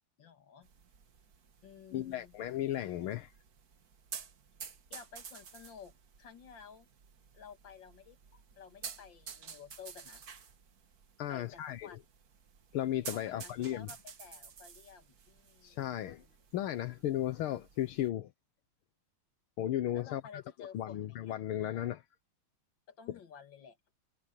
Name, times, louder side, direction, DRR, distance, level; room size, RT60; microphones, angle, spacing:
voice 1, 0.2-0.7 1.6-2.4 4.9-6.9 7.3-8.2 8.5-10.2 11.3-12.0 13.1-15.8 19.9-21.3 22.9-23.8, left 7 dB, 60° left, 2.5 m, -53 dB
sound 1, 0.6-18.1, right 6 dB, 50° right, 1.8 m, -51 dB
voice 2, 1.9-3.3 11.2-12.0 12.7-13.9 15.6-16.2 16.5-18.3 19.6-20.4 20.7-22.0, left 12 dB, 80° left, 1.8 m, -35 dB
omnidirectional pair, 2.3 m